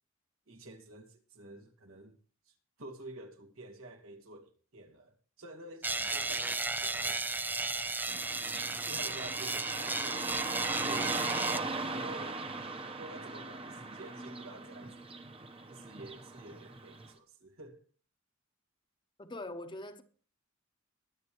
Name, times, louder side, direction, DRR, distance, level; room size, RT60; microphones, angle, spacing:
voice 1, 0.5-2.2 2.8-7.2 8.4-10.4 10.6-11.2 11.9-12.4 12.9-15.0 15.7-17.8, right 2 dB, 85° right, 2.3 m, -49 dB
sound 1, 5.8-11.6, right 3 dB, 10° right, 0.5 m, -34 dB
Car passing by / Traffic noise roadway noise, 8.1-17.1, right 3 dB, 25° right, 1.0 m, -39 dB
voice 2, 19.2-20.0, left 2 dB, 25° left, 1.0 m, -42 dB
22.5 x 8.5 x 3.0 m
head